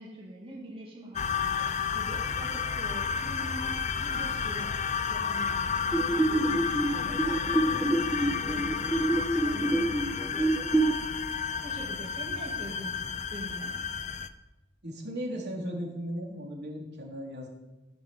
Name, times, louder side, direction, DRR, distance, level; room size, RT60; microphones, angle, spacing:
voice 1, 0.0-4.7 5.1-6.5 6.9-7.9 8.2-11.0 11.6-13.0 13.3-13.8, equal, 30° right, -3 dB, 2.6 m, -44 dB
sound 1, 1.1-14.3, left 6 dB, 40° left, 0.7 m, -31 dB
sound 2, 5.9-10.9, right 2 dB, ahead, 1.0 m, -27 dB
voice 2, 14.8-17.5, equal, 60° right, -1 dB, 4.0 m, -36 dB
16.5 x 7.8 x 8.1 m, 1.1 s
head